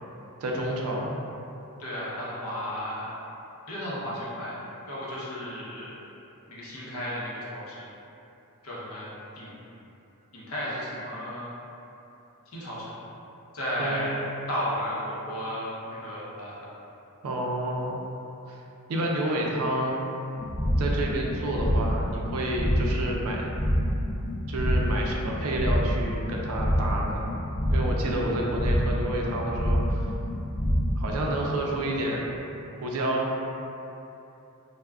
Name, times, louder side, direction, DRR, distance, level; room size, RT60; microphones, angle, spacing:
voice 1, 0.4-1.2 13.8-14.3 17.2-18.0 18.5-18.6 18.9-20.1 20.8-23.5 24.5-27.2 27.7-30.1 31.0-32.3 32.8-33.3, right 1 dB, 75° right, -1 dB, 0.4 m, -29 dB
voice 2, 1.8-3.1 3.7-4.6 4.9-6.0 6.5-7.8 8.6-9.1 9.3-9.6 10.3-11.5 12.5-12.9 13.5-14.2 14.5-16.5, equal, 70° left, -7 dB, 0.7 m, -33 dB
sound 1, 20.4-32.1, equal, 35° left, 0.4 m, -27 dB
2.3 x 2.1 x 3.4 m, 2.9 s
head